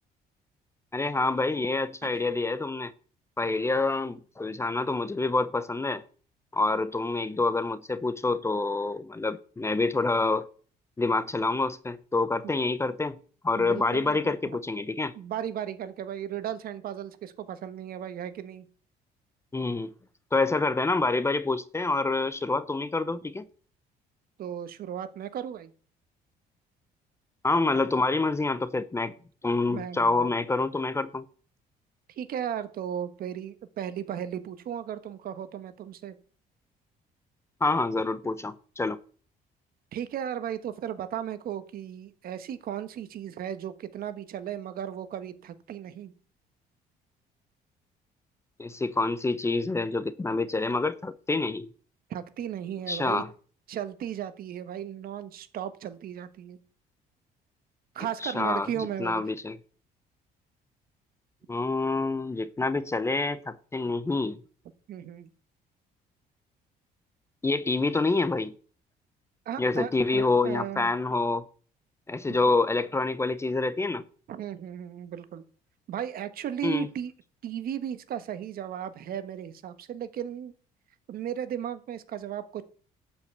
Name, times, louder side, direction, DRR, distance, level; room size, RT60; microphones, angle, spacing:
voice 1, 0.9-2.9 3.4-6.0 6.5-10.5 11.0-13.2 13.4-15.1 19.5-19.9 20.3-23.4 27.4-29.1 29.4-31.3 37.6-39.0 48.6-51.7 52.9-53.3 58.2-58.7 59.0-59.6 61.5-64.4 67.4-68.5 69.6-71.5 72.1-74.0 76.6-76.9, left 3 dB, 15° left, 0.7 m, -27 dB
voice 2, 13.6-14.6 15.2-18.7 24.4-25.7 29.7-30.3 32.1-36.2 39.9-46.1 52.1-53.2 53.7-56.6 57.9-59.2 64.9-65.3 69.4-70.9 72.3-72.5 74.3-75.4 75.9-77.1 77.4-80.5 81.1-82.6, right 10 dB, 60° right, 1.3 m, -35 dB
12.0 x 5.6 x 8.1 m
cardioid pair, 110°, 17 cm